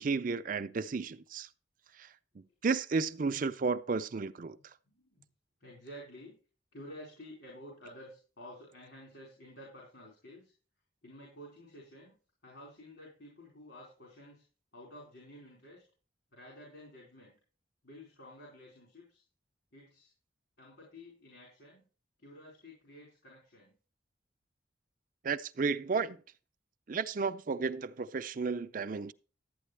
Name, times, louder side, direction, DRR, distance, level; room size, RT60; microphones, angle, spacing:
voice 1, 0.0-1.5 2.0-2.1 2.6-4.6 25.2-26.2 26.9-29.1, right 4 dB, 45° right, 0.5 m, -32 dB
voice 2, 4.4-5.2 5.6-6.3 6.7-10.5 11.0-12.1 12.4-14.4 14.7-15.8 16.3-17.3 17.8-19.2 19.7-20.1 20.6-21.9 22.2-23.7, equal, 75° left, 4.7 m, -51 dB
12.0 x 9.1 x 3.3 m
head